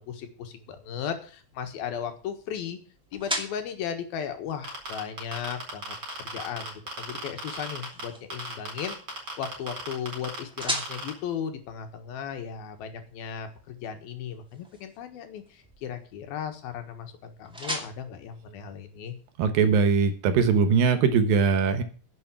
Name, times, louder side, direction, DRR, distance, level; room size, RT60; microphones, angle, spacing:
voice 1, 0.0-2.8 3.1-19.2, left 8 dB, 80° left, 6 dB, 3.3 m, -36 dB
sound 1, 0.5-19.4, equal, ahead, 1.3 m, -42 dB
sound 2, 4.6-8.0 8.3-11.1, right 2 dB, 25° right, 4.8 m, -35 dB
voice 2, 19.4-21.8, right 5 dB, 70° right, 9 dB, 2.9 m, -21 dB
11.0 x 7.0 x 8.4 m, 0.41 s
omnidirectional pair, 4.3 m